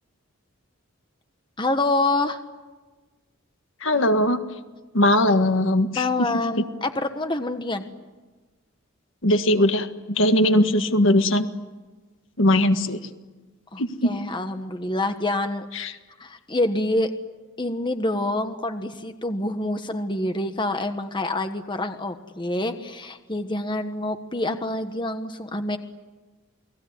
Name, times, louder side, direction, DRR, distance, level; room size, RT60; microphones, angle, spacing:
voice 1, 1.6-2.4 6.0-7.9 13.7-15.7 16.2-17.1 17.6-25.8, left 2 dB, 25° left, 7 dB, 1.4 m, -26 dB
voice 2, 3.8-4.4 4.9-6.3 9.2-11.5 12.4-13.0 13.8-14.1 15.7-15.9, left 1 dB, 65° left, 8 dB, 1.7 m, -20 dB
29.5 x 20.5 x 9.6 m, 1.3 s
head